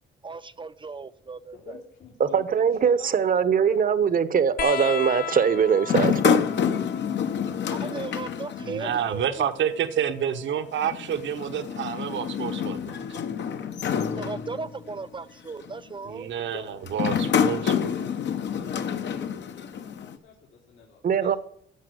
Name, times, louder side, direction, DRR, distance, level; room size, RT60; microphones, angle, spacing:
voice 1, 0.2-1.6 7.7-9.5 13.8-16.3, right 4 dB, 25° right, 0.6 m, -37 dB
voice 2, 1.5-3.8 7.7-8.5 8.8-9.2 16.5-16.8 17.1-17.7 17.9-21.4, left 5 dB, 85° left, 3.6 m, -47 dB
voice 3, 2.2-6.4 21.0-21.4, right 7 dB, 45° right, 0.9 m, -22 dB
sound 1, 4.6-11.7 13.0-13.8 15.1-15.2, left 9 dB, 50° left, 0.7 m, -37 dB
sound 2, 5.8-9.2 9.5-9.6 10.8-15.0 15.6-15.9 16.9-20.2, left 8 dB, 65° left, 1.2 m, -27 dB
voice 4, 8.6-13.2 16.0-17.7, right 9 dB, 70° right, 1.1 m, -29 dB
15.0 x 5.8 x 7.9 m
cardioid pair, 90°, 20 cm